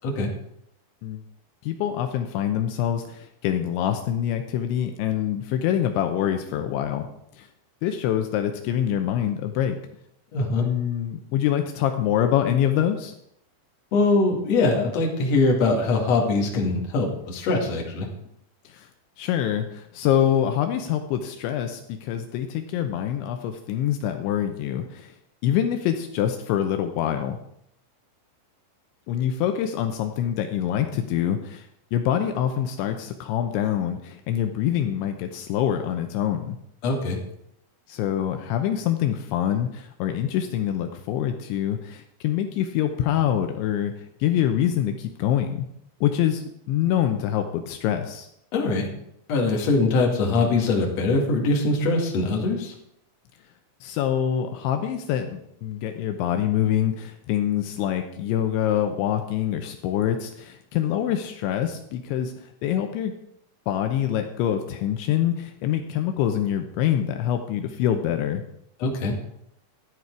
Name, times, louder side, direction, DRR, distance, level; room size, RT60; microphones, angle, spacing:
voice 1, 1.6-7.1 7.4-7.5 7.8-9.8 10.6-13.1 18.7-18.9 19.2-25.1 25.4-27.4 29.1-36.6 37.9-43.9 44.2-45.7 46.0-48.3 53.8-62.3 62.6-63.1 63.7-68.4, left 10 dB, 80° left, 6 dB, 3.0 m, -25 dB
voice 2, 10.3-10.7 13.9-18.1 36.8-37.2 48.5-48.9 49.3-52.7 68.8-69.1, left 3 dB, 45° left, 0 dB, 2.6 m, -22 dB
13.0 x 11.0 x 4.8 m, 0.75 s
omnidirectional pair, 5.5 m